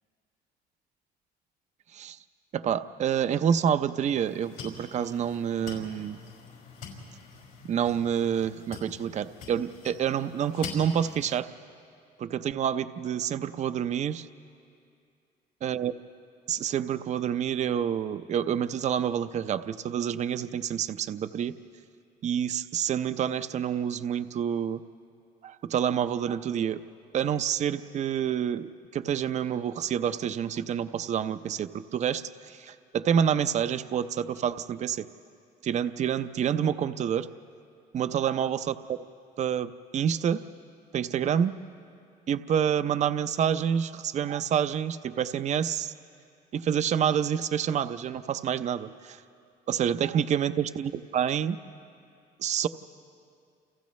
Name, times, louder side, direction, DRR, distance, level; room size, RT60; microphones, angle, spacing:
voice 1, 2.5-6.2 7.7-11.5 12.2-14.3 15.6-15.9 16.5-21.5 22.2-24.8 25.4-26.8 27.1-35.1 35.6-37.3 37.9-39.0 39.4-40.4 40.9-41.5 42.3-45.9 46.5-49.2 49.7-51.6 52.4-52.7, right 8 dB, 45° right, 11 dB, 0.6 m, -28 dB
sound 1, 4.0-11.4, left 5 dB, 75° left, 5.7 m, -45 dB
29.5 x 29.0 x 3.2 m, 2.4 s
cardioid pair, 110°, 17 cm